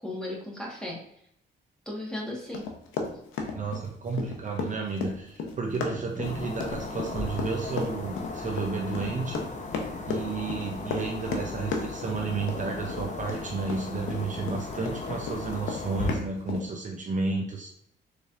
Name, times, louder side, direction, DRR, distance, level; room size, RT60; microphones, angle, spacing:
voice 1, 0.0-1.0 1.8-2.7, left 1 dB, 5° left, -3 dB, 1.3 m, -35 dB
Run, 2.5-15.0 15.3-16.6, left 5 dB, 85° left, 0.7 m, -34 dB
voice 2, 3.5-9.4 10.1-17.7, right 4 dB, 40° right, 1 dB, 0.6 m, -32 dB
sound 1, 6.2-16.2, left 3 dB, 40° left, 0.6 m, -36 dB
4.0 x 3.3 x 2.4 m, 0.72 s
cardioid pair, 90°, 20 cm